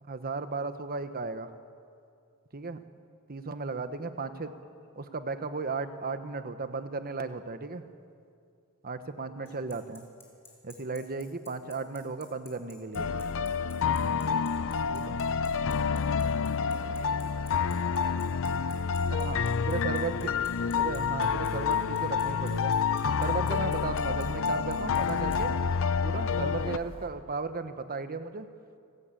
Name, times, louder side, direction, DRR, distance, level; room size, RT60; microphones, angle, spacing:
voice 1, 0.0-1.5 2.5-2.8 3.3-4.5 5.0-7.8 8.8-10.0 10.6-13.1 14.9-15.2 19.1-19.4 19.7-20.4 20.8-22.8 23.2-25.6 26.0-28.5, right 3 dB, 45° right, 10 dB, 1.1 m, -35 dB
voice 2, 9.4-9.8 16.0-18.4 18.9-20.9, left 2 dB, 80° left, -1 dB, 4.5 m, -52 dB
Bicycle, 9.5-25.4, left 2 dB, 10° left, 5.3 m, -52 dB
sound 1, 12.9-26.8, left 6 dB, 65° left, 0.6 m, -28 dB
sound 2, 15.9-27.1, equal, 25° right, 2.4 m, -49 dB
30.0 x 13.5 x 9.0 m, 2.4 s
head